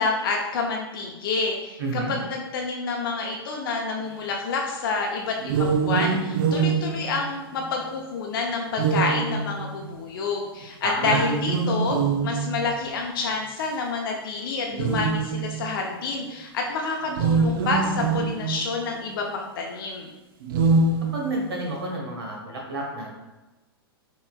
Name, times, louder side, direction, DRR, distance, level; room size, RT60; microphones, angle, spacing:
voice 1, 0.0-20.1, left 4 dB, 60° left, 1 dB, 0.7 m, -28 dB
voice 2, 1.8-2.1 10.8-11.2 21.1-23.1, right 1 dB, 80° right, -1 dB, 1.4 m, -30 dB
sound 1, 5.4-7.9 8.8-10.0 11.0-12.8 13.6-13.7 14.7-15.8 17.1-18.9 20.4-21.6, right 4 dB, 60° right, 0.6 m, -24 dB
5.7 x 3.1 x 2.3 m, 1.1 s
hypercardioid pair, 105°, 13 cm